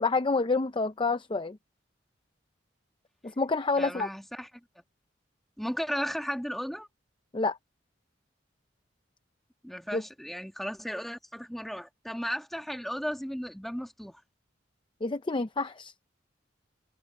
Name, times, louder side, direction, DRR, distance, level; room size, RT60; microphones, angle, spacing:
voice 1, 0.0-1.6 3.2-4.1 7.3-7.6 9.9-10.0 15.0-15.9, left 3 dB, 25° left, 0.6 m, -28 dB
voice 2, 3.8-4.5 5.6-6.9 9.6-14.2, equal, ahead, 1.4 m, -35 dB
head